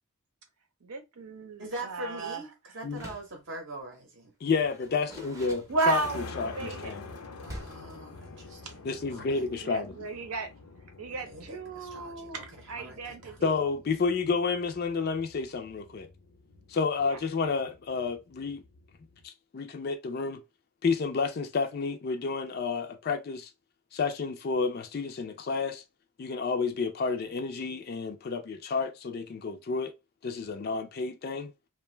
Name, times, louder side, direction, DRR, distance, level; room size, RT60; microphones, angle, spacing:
voice 1, 0.8-2.4 5.7-6.9 9.6-10.5 11.0-13.5 17.0-17.2, right 3 dB, 85° right, 0.7 m, -34 dB
voice 2, 1.6-4.3 7.4-9.4 11.2-13.4, right 2 dB, 55° right, 0.7 m, -43 dB
Door, 2.9-3.4 4.6-6.3 7.4-7.9, right 1 dB, 15° right, 0.6 m, -45 dB
voice 3, 4.4-7.1 8.8-10.1 13.4-16.1 16.7-18.6 19.2-20.4 20.8-23.5 23.9-25.8 26.2-29.9 30.2-31.5, left 4 dB, 45° left, 0.3 m, -30 dB
sound 1, 5.7-19.2, left 3 dB, 85° left, 0.6 m, -48 dB
2.5 x 2.2 x 3.1 m
head